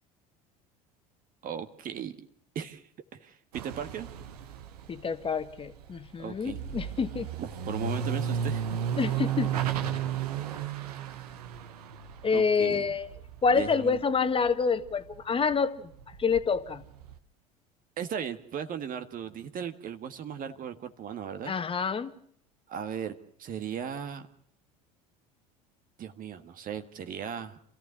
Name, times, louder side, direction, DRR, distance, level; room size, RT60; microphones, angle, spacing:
voice 1, 1.4-2.1 2.5-2.8 3.1-4.1 6.2-6.6 7.4-8.8 12.3-12.9 13.5-14.0 18.0-21.5 22.7-23.1 23.4-24.3 26.0-27.6, right 8 dB, 45° right, 1.7 m, -37 dB
sound 1, 3.5-14.5 14.8-17.2, right 8 dB, 80° right, 1.4 m, -34 dB
voice 2, 4.9-7.3 9.0-9.6 12.2-13.1 13.4-15.7 16.2-16.8 21.5-22.1, left 5 dB, 25° left, 1.6 m, -27 dB
27.0 x 15.0 x 8.0 m
hypercardioid pair, 75°, 20 cm